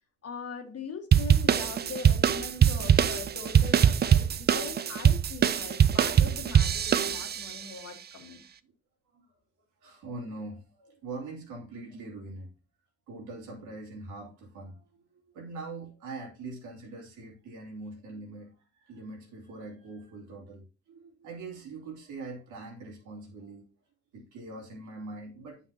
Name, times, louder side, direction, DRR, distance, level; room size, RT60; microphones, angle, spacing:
voice 1, 0.2-8.4, left 5 dB, 50° left, 1.7 m, -41 dB
sound 1, 1.1-7.6, right 8 dB, 35° right, 0.4 m, -23 dB
voice 2, 9.8-12.5 13.1-23.6 24.1-25.6, right 3 dB, 85° right, 2.7 m, -43 dB
9.3 x 5.8 x 2.8 m
cardioid pair, 90°, 30 cm